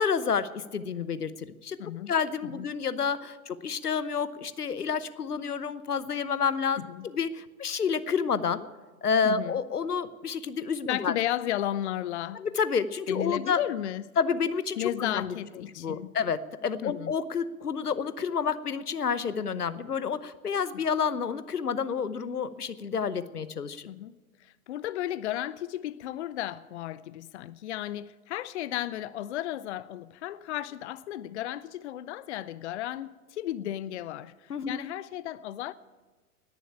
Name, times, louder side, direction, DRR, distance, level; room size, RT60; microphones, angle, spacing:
voice 1, 0.0-1.8 2.1-8.7 9.0-11.1 12.3-13.6 14.2-15.4 15.8-23.9 34.5-34.9, left 6 dB, 85° left, 0.9 m, -29 dB
voice 2, 1.8-2.1 2.5-2.7 6.8-7.1 9.2-9.6 10.9-12.4 13.1-14.0 14.8-16.1 16.8-17.1 23.9-24.2 24.4-35.7, left 13 dB, 50° left, 0.6 m, -34 dB
19.0 x 7.1 x 8.7 m
figure-of-eight pair, 105°, 45 cm